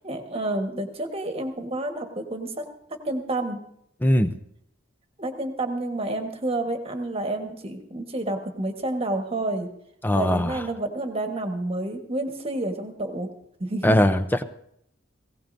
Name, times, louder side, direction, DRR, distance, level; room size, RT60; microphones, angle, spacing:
voice 1, 0.0-2.6 2.9-3.6 5.2-9.7 10.1-13.3 13.6-14.0, right 2 dB, 30° right, 5 dB, 1.4 m, -29 dB
voice 2, 4.0-4.3 10.0-10.6 13.8-14.4, left 1 dB, 10° left, 10 dB, 0.6 m, -20 dB
18.5 x 17.0 x 2.7 m, 0.74 s
head